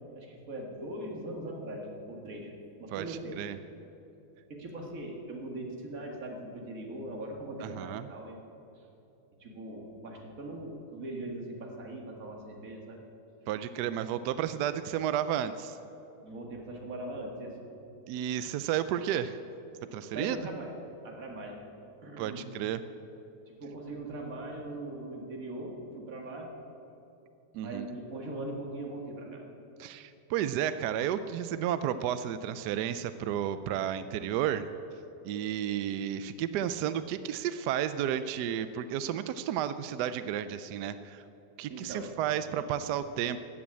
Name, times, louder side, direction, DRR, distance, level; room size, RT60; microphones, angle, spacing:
voice 1, 0.1-2.5 2.8-3.4 3.7-3.8 4.5-8.4 9.4-13.0 16.2-17.6 20.1-20.7 21.0-21.6 22.0-22.5 23.5-26.5 27.6-29.4 41.7-42.1 42.6-42.7, right 1 dB, 45° right, 0 dB, 2.2 m, -40 dB
voice 2, 2.9-3.6 7.6-8.1 13.5-15.8 18.1-19.4 19.9-20.4 22.2-22.8 27.5-27.9 29.8-34.7 35.2-41.2 41.6-43.4, right 10 dB, 75° right, 12 dB, 1.0 m, -32 dB
14.0 x 8.6 x 8.6 m, 3.0 s
omnidirectional pair, 2.1 m